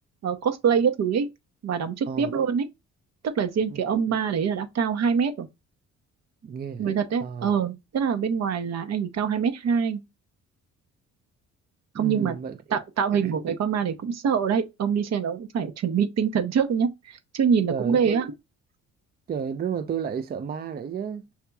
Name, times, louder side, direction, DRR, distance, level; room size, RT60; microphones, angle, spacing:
voice 1, 0.2-1.3 1.6-2.7 3.3-5.5 6.8-10.0 11.9-12.4 12.7-18.3, right 7 dB, 60° right, 0.8 m, -25 dB
voice 2, 6.4-6.9 7.2-7.5 11.9-12.6 13.1-13.3 17.7-18.3 19.3-21.3, right 7 dB, 30° right, 0.4 m, -32 dB
5.7 x 2.8 x 2.3 m
cardioid pair, 90°, 30 cm